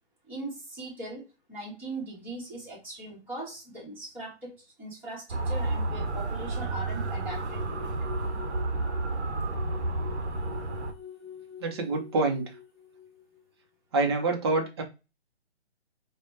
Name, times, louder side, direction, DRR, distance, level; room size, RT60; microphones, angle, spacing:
voice 1, 0.3-7.9, right 2 dB, 5° right, -6 dB, 1.1 m, -40 dB
Motor vehicle (road) / Siren, 5.3-10.9, right 2 dB, 80° right, 0.8 m, -31 dB
sound 1, 5.6-13.4, left 8 dB, 15° left, 1.4 m, -46 dB
voice 2, 11.6-12.5 13.9-14.8, right 3 dB, 25° right, 3 dB, 0.6 m, -26 dB
4.8 x 2.2 x 3.1 m, 0.28 s
hypercardioid pair, 150°, 34 cm